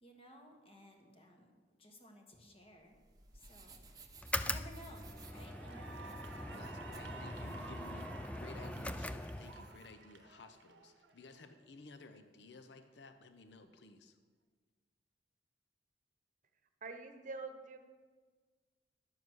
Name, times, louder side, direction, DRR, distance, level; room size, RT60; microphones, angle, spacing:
voice 1, 0.0-3.0 3.3-3.8 4.4-6.3 7.1-7.3 7.6-7.9, equal, 35° left, 2 dB, 1.5 m, -57 dB
sound 1, 2.8-9.9, right 4 dB, 20° right, 0.9 m, -60 dB
sound 2, 4.2-9.8, left 2 dB, 5° left, 0.3 m, -42 dB
Cheering / Applause, 4.2-4.5 4.9-11.4, right 5 dB, 80° right, 0.8 m, -53 dB
voice 2, 6.5-8.1 8.4-14.2, left 3 dB, 70° left, 8 dB, 0.7 m, -55 dB
voice 3, 16.8-17.8, right 3 dB, 45° right, 7 dB, 1.0 m, -45 dB
11.0 x 7.3 x 6.3 m, 1.5 s
head